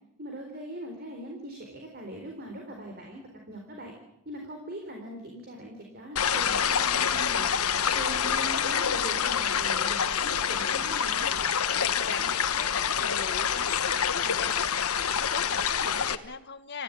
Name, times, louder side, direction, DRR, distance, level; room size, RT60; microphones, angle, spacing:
voice 1, 0.2-3.9 4.2-11.3, right 1 dB, 45° right, 2 dB, 4.2 m, -41 dB
sound 1, 6.2-16.2, left 8 dB, 80° left, 1.3 m, -27 dB
voice 2, 11.7-16.8, left 5 dB, 50° left, 8 dB, 1.4 m, -38 dB
29.0 x 15.5 x 9.0 m, 0.87 s
head